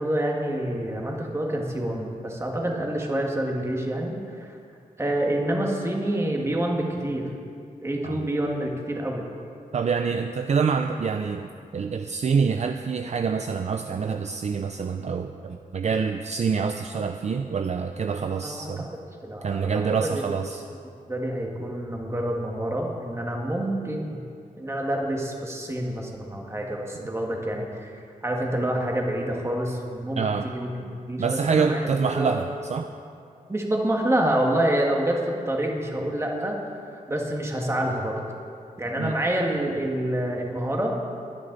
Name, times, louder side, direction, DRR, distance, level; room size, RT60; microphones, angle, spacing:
voice 1, 0.0-4.6 5.0-7.3 7.8-9.3 18.4-18.9 19.2-20.2 21.1-24.2 24.6-32.4 33.5-38.2 38.8-41.0, right 1 dB, 20° right, 0 dB, 1.8 m, -27 dB
voice 2, 9.7-18.9 19.4-20.6 30.2-30.5 31.2-32.9 39.0-39.1, right 5 dB, 50° right, 6 dB, 0.5 m, -26 dB
21.0 x 9.7 x 4.0 m, 2.4 s
wide cardioid pair, 145°, 15 cm